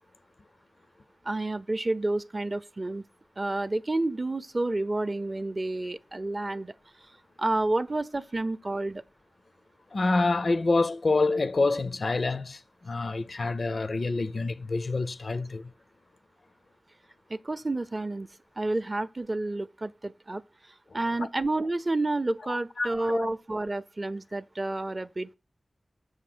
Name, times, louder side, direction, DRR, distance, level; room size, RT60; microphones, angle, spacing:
voice 1, 1.2-3.1 3.4-7.1 7.4-9.0 17.3-18.3 18.6-25.3, right 2 dB, 35° right, 0.5 m, -30 dB
voice 2, 9.9-15.7 21.2-21.3 22.5-23.3, left 3 dB, 65° left, 0.5 m, -27 dB
7.3 x 6.3 x 6.0 m
wide cardioid pair, 80°, 0 cm